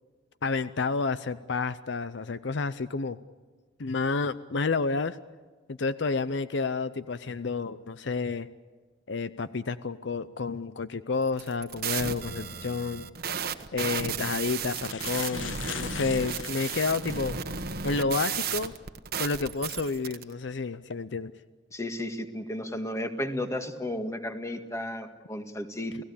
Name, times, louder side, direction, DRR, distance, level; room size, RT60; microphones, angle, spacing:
voice 1, 0.4-3.2 3.8-5.2 5.7-8.5 9.1-13.0 13.7-17.4 17.8-18.7 19.2-21.3, left 4 dB, 65° left, 14 dB, 0.6 m, -30 dB
sound 1, 11.3-20.2, right 6 dB, 50° right, 1.2 m, -34 dB
sound 2, 13.2-13.4 14.2-14.3 14.5-17.4 17.9-18.0 19.9-20.1 20.7-21.0, left 9 dB, 80° left, 1.0 m, -40 dB
voice 2, 21.7-26.0, left 1 dB, 15° left, 7 dB, 1.8 m, -33 dB
29.5 x 17.0 x 8.6 m, 1.4 s
head